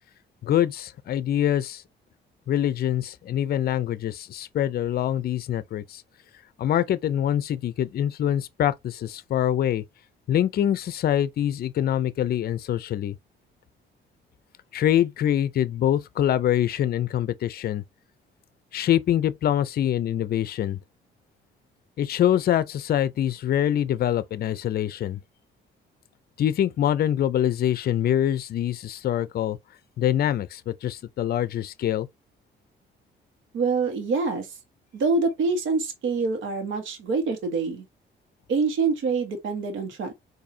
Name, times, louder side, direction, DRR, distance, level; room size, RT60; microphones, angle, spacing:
voice 1, 0.4-1.8 2.5-6.0 6.6-9.8 10.3-13.2 14.7-17.8 18.7-20.8 22.0-25.2 26.4-29.6 30.0-32.1, left 11 dB, 50° left, 0.4 m, -24 dB
voice 2, 33.5-34.5 34.9-37.8 38.5-40.1, right 4 dB, 75° right, 1.3 m, -25 dB
4.1 x 2.7 x 2.7 m
cardioid pair, 90°, 20 cm